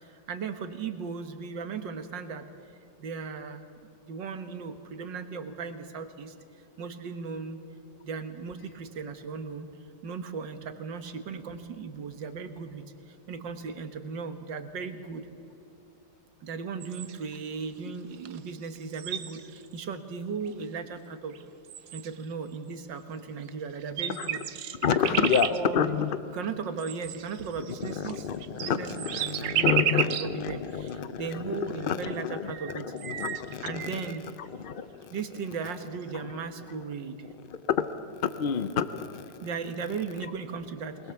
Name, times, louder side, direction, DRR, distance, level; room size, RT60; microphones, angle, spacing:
voice 1, 0.0-2.5 3.0-3.7 4.0-6.3 6.8-7.6 8.0-9.7 10.0-15.3 16.4-21.4 21.9-26.0 26.3-32.9 33.6-34.2 35.1-37.3 39.4-41.0, right 5 dB, 85° right, 8 dB, 2.0 m, -37 dB
sound 1, 16.8-17.4 18.3-18.4 18.6-19.7 20.5-20.6 21.3-21.4 21.7-22.3 23.4-23.5 23.8-25.6 26.8-30.3 30.9-31.0 32.1-32.2 32.5-34.2, right 10 dB, 70° right, 1.3 m, -33 dB
voice 2, 24.8-26.1 27.8-31.2 31.8-32.4 33.0-33.6 34.6-34.9 38.2-39.2, left 7 dB, 65° left, 11 dB, 0.5 m, -28 dB
23.0 x 21.0 x 7.1 m, 2.7 s
omnidirectional pair, 1.9 m